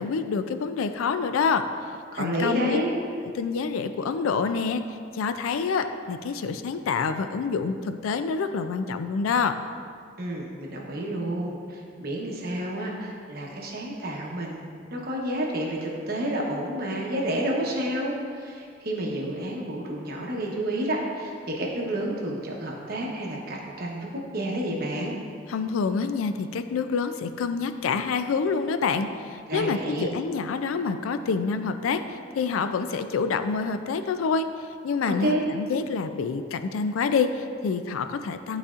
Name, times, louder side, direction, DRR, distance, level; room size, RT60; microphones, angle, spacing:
voice 1, 0.0-1.6 2.1-2.8 3.4-4.8 5.1-9.5 25.5-34.5 34.8-38.6, left 5 dB, 90° left, 9 dB, 0.4 m, -27 dB
voice 2, 2.1-3.0 10.2-25.2 29.5-30.1 35.1-35.5, right 1 dB, 50° right, -2 dB, 1.0 m, -30 dB
11.5 x 4.1 x 2.5 m, 2.2 s
head